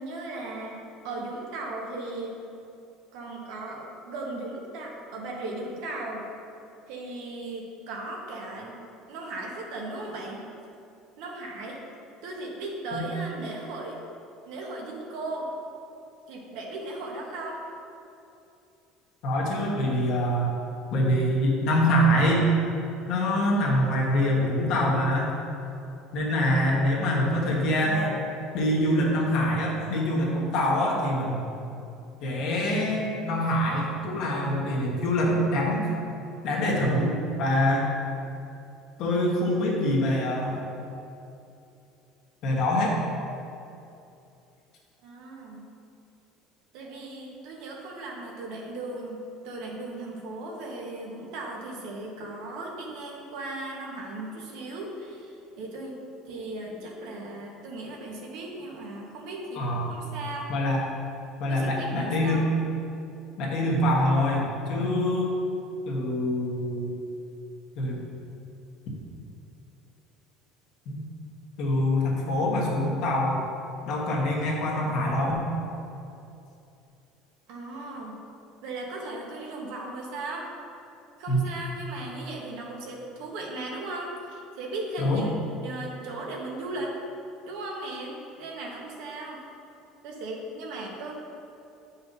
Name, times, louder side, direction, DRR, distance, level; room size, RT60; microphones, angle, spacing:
voice 1, 0.0-2.4 3.1-6.2 6.9-8.8 9.1-10.4 11.2-11.8 12.2-14.0 14.5-15.5 16.3-17.6 45.0-45.7 46.7-56.0 56.3-60.5 61.5-62.5 77.5-78.2 78.6-80.5 81.2-85.3 85.6-86.9 87.5-89.4 90.0-91.1, right 2 dB, 65° right, -1 dB, 1.3 m, -37 dB
voice 2, 19.2-20.5 20.9-22.5 23.1-25.3 26.1-28.1 28.5-31.5 32.2-35.9 36.4-37.9 39.0-40.6 42.4-42.9 59.5-60.0 60.5-60.8 61.4-62.4 63.4-65.3 65.9-66.9 67.8-68.0 70.8-71.0 71.6-73.4 73.9-75.4 81.3-81.5 85.0-85.2, left 1 dB, 50° left, -2 dB, 1.3 m, -25 dB
9.6 x 5.6 x 2.7 m, 2.7 s
cardioid pair, 175°, 0 cm